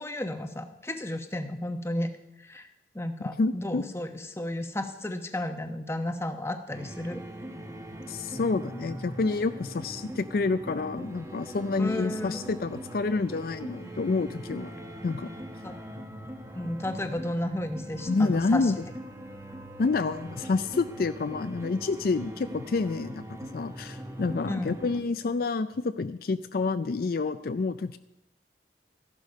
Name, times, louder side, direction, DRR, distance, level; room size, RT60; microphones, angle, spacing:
voice 1, 0.0-2.1 2.4-2.7 2.9-7.2 11.8-12.4 15.6-15.8 16.5-18.7 24.5-24.7, left 1 dB, 15° left, 7 dB, 0.9 m, -33 dB
voice 2, 3.4-3.8 8.1-14.8 15.0-15.3 18.1-18.8 19.8-23.2 23.5-28.0, left 3 dB, 55° left, 11 dB, 0.4 m, -28 dB
sound 1, 6.7-25.0, right 1 dB, 15° right, 1.1 m, -41 dB
14.5 x 11.5 x 5.4 m, 0.91 s
head